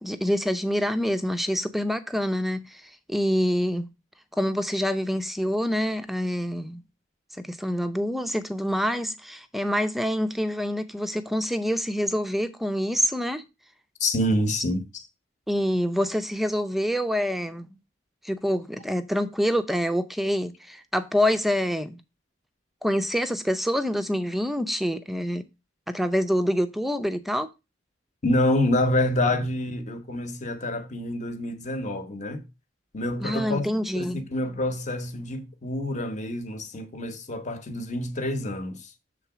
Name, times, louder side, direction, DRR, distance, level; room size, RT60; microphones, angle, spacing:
voice 1, 0.0-3.9 4.4-6.8 7.4-13.4 15.5-17.7 18.2-22.0 22.8-25.4 25.9-27.5 33.2-34.3, equal, ahead, 0.5 m, -26 dB
voice 2, 14.0-14.9 28.2-32.4 32.9-33.6 33.9-38.9, left 1 dB, 40° left, 1.1 m, -27 dB
6.9 x 3.8 x 6.0 m
head